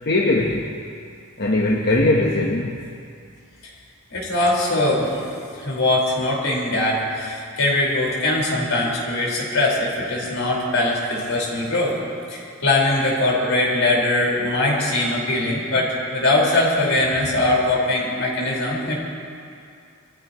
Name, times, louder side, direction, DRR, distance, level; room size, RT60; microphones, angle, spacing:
voice 1, 0.0-0.7 1.4-2.8, left 2 dB, 55° left, -1 dB, 1.1 m, -20 dB
voice 2, 4.1-5.2 5.5-11.9 12.3-19.0, left 2 dB, 75° left, -4 dB, 4.8 m, -21 dB
25.0 x 15.0 x 3.1 m, 2.4 s
head